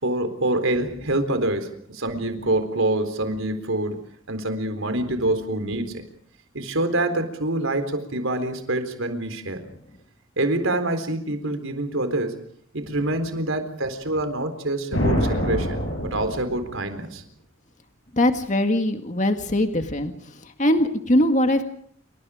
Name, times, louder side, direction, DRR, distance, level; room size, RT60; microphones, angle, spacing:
voice 1, 0.0-6.0 6.5-9.6 10.4-12.4 12.7-17.2, right 1 dB, 80° right, 8 dB, 3.9 m, -26 dB
sound 1, 14.9-17.0, equal, 70° left, 6.8 m, -25 dB
voice 2, 18.1-20.1 20.6-21.6, left 1 dB, 35° left, 6 dB, 1.9 m, -21 dB
28.5 x 25.0 x 5.0 m, 0.62 s
head